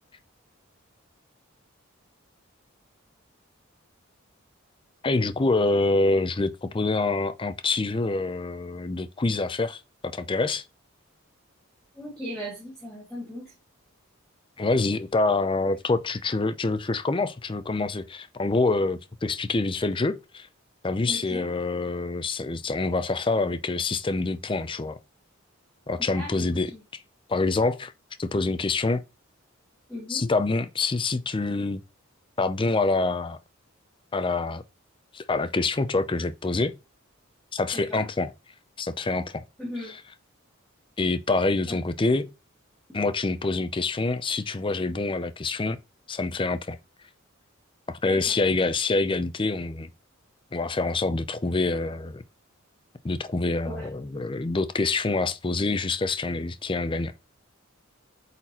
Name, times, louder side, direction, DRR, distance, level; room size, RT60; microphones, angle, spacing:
voice 1, 5.0-10.6 14.6-20.5 20.8-25.0 25.9-26.7 27.3-27.9 28.2-29.0 30.1-31.8 32.4-33.4 34.1-34.6 35.1-36.8 37.5-38.3 38.8-39.4 41.0-42.3 42.9-45.8 46.1-46.8 47.9-49.9 50.5-52.2 53.0-57.1, left 3 dB, 25° left, 0.5 m, -26 dB
voice 2, 11.9-13.5 21.1-21.5 26.0-26.6 29.9-30.3 37.7-38.1 39.6-40.0 41.7-41.8 48.0-48.4 53.6-53.9, equal, 5° left, 2.2 m, -38 dB
8.3 x 4.1 x 2.9 m
head